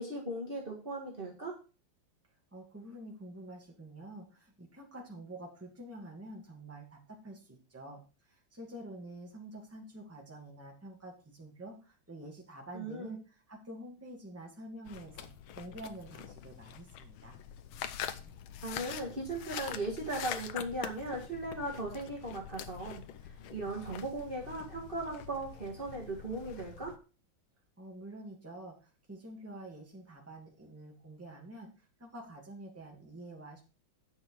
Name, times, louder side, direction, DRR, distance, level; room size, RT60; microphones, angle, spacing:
voice 1, 0.0-1.6 12.7-13.2 18.6-27.0, right 2 dB, 25° right, -1 dB, 2.0 m, -38 dB
voice 2, 2.5-8.0 8.3-15.3 15.6-17.4 27.8-33.6, right 1 dB, 5° right, -1 dB, 2.1 m, -48 dB
sound 1, 14.9-27.0, left 9 dB, 85° left, 1.6 m, -45 dB
9.5 x 6.3 x 4.7 m, 0.34 s
omnidirectional pair, 2.2 m